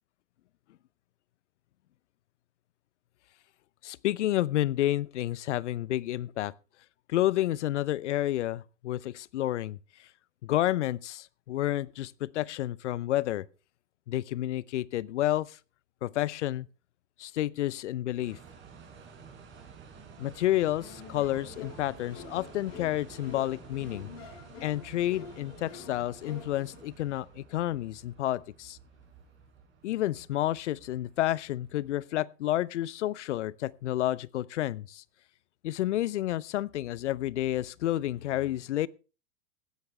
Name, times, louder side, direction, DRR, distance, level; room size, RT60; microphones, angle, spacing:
voice 1, 3.8-6.5 7.1-9.8 10.4-13.4 14.1-15.6 16.0-16.7 17.2-18.4 20.2-24.1 24.6-28.8 29.8-35.0 35.6-38.9, left 14 dB, 70° left, 0.7 m, -30 dB
sound 1, 18.2-32.0, right 6 dB, 30° right, 5.9 m, -51 dB
sound 2, 20.8-26.8, left 5 dB, 50° left, 6.3 m, -47 dB
16.5 x 12.5 x 3.3 m
hypercardioid pair, 105°, 37 cm